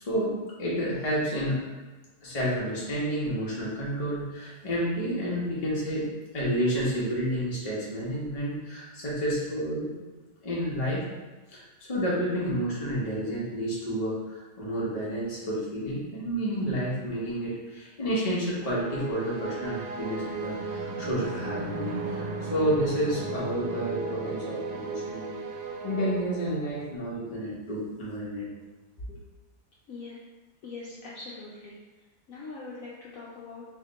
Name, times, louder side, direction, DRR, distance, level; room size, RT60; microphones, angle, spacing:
voice 1, 0.6-1.6 2.2-6.1 6.3-9.9 10.4-11.0 11.5-11.6 11.9-25.4 25.8-28.5, equal, 30° left, -6 dB, 0.8 m, -30 dB
sound 1, 18.6-27.0, right 3 dB, 85° right, 1.1 m, -35 dB
voice 2, 30.6-31.8 32.3-33.7, left 3 dB, 65° left, -6 dB, 0.9 m, -42 dB
3.2 x 2.8 x 3.9 m, 1.2 s
omnidirectional pair, 1.7 m